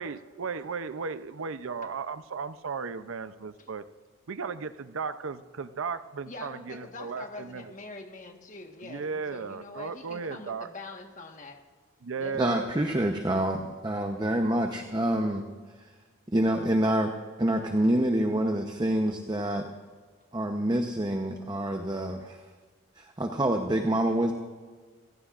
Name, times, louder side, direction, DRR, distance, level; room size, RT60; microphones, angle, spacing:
voice 1, 0.0-3.8 4.3-7.7 8.8-10.7 12.0-12.8, right 5 dB, 80° right, 12 dB, 0.6 m, -35 dB
voice 2, 6.3-11.6 12.2-12.7, left 3 dB, 40° left, 3 dB, 1.4 m, -44 dB
voice 3, 12.4-15.5 15.8-15.9 16.3-17.1 17.4-19.7 20.3-22.4 23.0-24.3, right 1 dB, 20° right, 4 dB, 0.8 m, -27 dB
27.5 x 15.5 x 2.5 m, 1.5 s
head